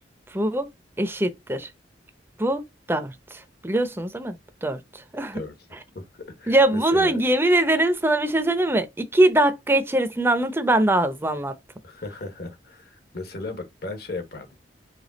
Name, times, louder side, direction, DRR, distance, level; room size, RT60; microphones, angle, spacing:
voice 1, 0.3-0.7 1.0-1.7 2.4-2.6 2.9-4.8 5.1-5.4 6.5-11.5, right 1 dB, 10° right, 0.6 m, -22 dB
voice 2, 5.9-7.2 11.8-14.5, left 2 dB, 55° left, 1.4 m, -36 dB
5.0 x 2.4 x 4.0 m
head